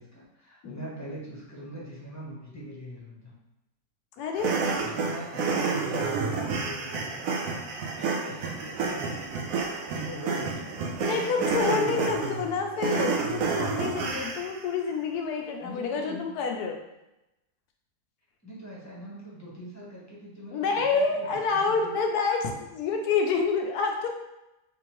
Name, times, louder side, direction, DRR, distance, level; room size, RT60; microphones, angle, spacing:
voice 1, 0.0-3.3 4.7-7.3 7.7-10.7 11.1-12.5 15.6-16.3 18.4-21.9, right 1 dB, 15° left, -6 dB, 0.9 m, -41 dB
voice 2, 4.2-4.5 11.0-16.8 20.5-24.1, left 5 dB, 90° left, 3 dB, 1.2 m, -28 dB
sound 1, 4.4-14.6, right 4 dB, 70° right, 0.9 m, -30 dB
3.7 x 3.5 x 3.0 m, 0.93 s
omnidirectional pair, 1.6 m